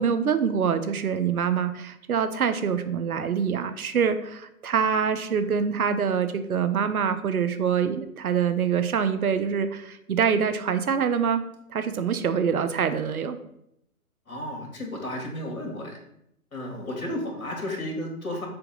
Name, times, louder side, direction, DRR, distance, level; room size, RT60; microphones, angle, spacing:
voice 1, 0.0-11.4 11.7-13.4, right 7 dB, 70° right, 10 dB, 0.8 m, -25 dB
voice 2, 14.3-16.0 16.5-18.5, left 1 dB, 65° left, 1 dB, 2.2 m, -33 dB
6.9 x 2.9 x 5.3 m, 0.78 s
figure-of-eight pair, 130°, 45 cm